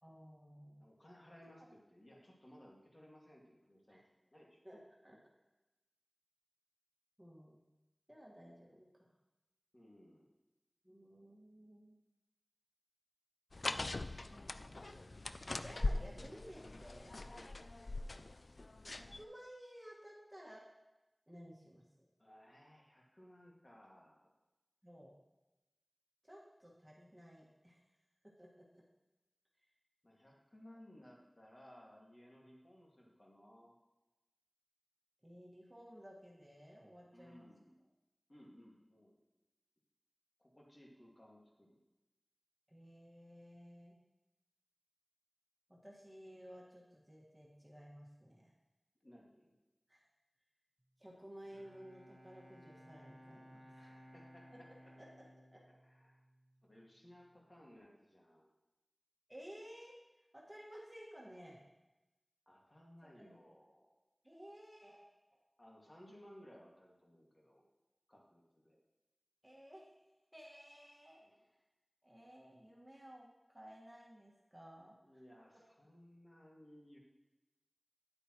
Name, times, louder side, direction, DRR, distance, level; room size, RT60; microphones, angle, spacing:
voice 1, 0.0-0.8 3.9-4.0 4.6-4.8 5.0-5.2 7.2-7.6 8.1-9.1 10.8-12.0 13.7-17.1 18.9-20.6 21.3-22.1 24.8-25.2 26.2-27.8 28.4-28.8 35.2-37.5 42.7-44.0 45.7-48.5 49.9-50.0 51.0-53.7 55.0-55.1 55.5-55.6 59.3-59.9 60.3-61.6 63.0-63.4 64.2-65.1 69.4-69.9 70.3-71.4 72.0-75.2, equal, 20° right, -4 dB, 1.8 m, -56 dB
voice 2, 0.8-4.0 4.3-4.6 9.7-10.3 16.1-16.2 17.1-17.6 22.2-24.3 30.0-33.7 37.1-37.7 38.3-39.2 40.4-41.8 49.0-49.5 53.7-54.5 55.8-56.2 56.6-58.5 62.5-63.9 65.6-67.6 68.1-68.8 71.2-71.4 75.0-77.0, equal, 45° left, -3 dB, 2.1 m, -60 dB
sound 1, 13.5-19.2, left 2 dB, 80° left, 0.3 m, -41 dB
Bowed string instrument, 51.3-57.0, equal, 40° right, 0.9 m, -60 dB
10.0 x 8.3 x 3.1 m, 1.0 s
wide cardioid pair, 50°, 0 cm